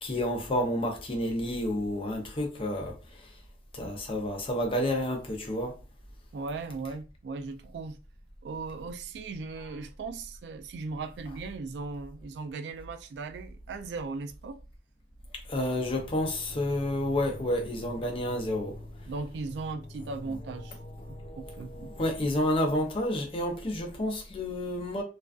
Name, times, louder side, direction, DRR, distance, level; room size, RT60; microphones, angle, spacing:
voice 1, 0.0-3.0 3.7-5.8 15.5-18.8 21.8-25.0, left 1 dB, 30° left, 0.5 m, -30 dB
voice 2, 6.3-8.0 8.4-14.6 19.1-20.8 21.1-21.9, right 4 dB, 75° right, 0.3 m, -38 dB
sound 1, 15.8-22.2, left 2 dB, 55° left, 0.8 m, -47 dB
2.4 x 2.2 x 2.3 m
head